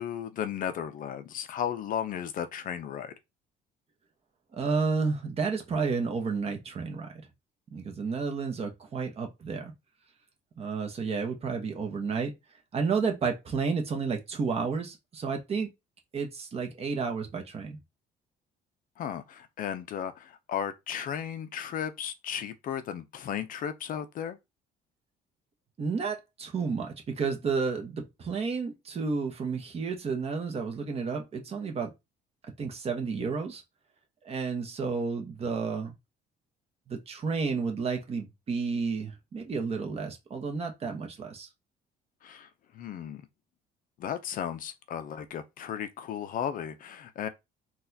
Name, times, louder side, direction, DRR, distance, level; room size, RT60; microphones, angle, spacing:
voice 1, 0.0-3.1 19.0-24.4 42.2-43.2 44.0-47.3, left 9 dB, 55° left, 0.5 m, -35 dB
voice 2, 4.5-7.3 7.7-9.7 10.6-12.3 12.7-15.7 16.1-17.8 25.8-31.9 32.6-33.6 34.2-36.0 36.9-41.5, right 5 dB, 35° right, 0.9 m, -31 dB
4.0 x 2.3 x 2.7 m
cardioid pair, 110°, 17 cm